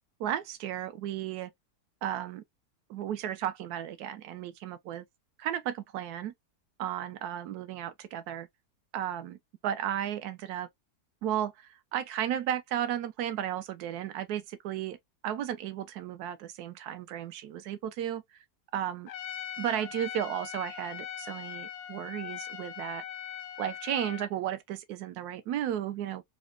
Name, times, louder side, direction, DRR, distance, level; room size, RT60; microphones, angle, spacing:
voice 1, 0.2-1.5 2.0-2.4 2.9-5.0 5.4-6.3 6.8-8.5 8.9-9.4 9.6-10.7 11.2-15.0 15.2-18.2 18.7-19.1 19.6-23.0 23.6-26.2, right 10 dB, 80° right, 1.1 m, -34 dB
Trumpet, 19.1-24.3, left 9 dB, 85° left, 1.1 m, -41 dB
3.9 x 2.1 x 2.3 m
omnidirectional pair, 1.7 m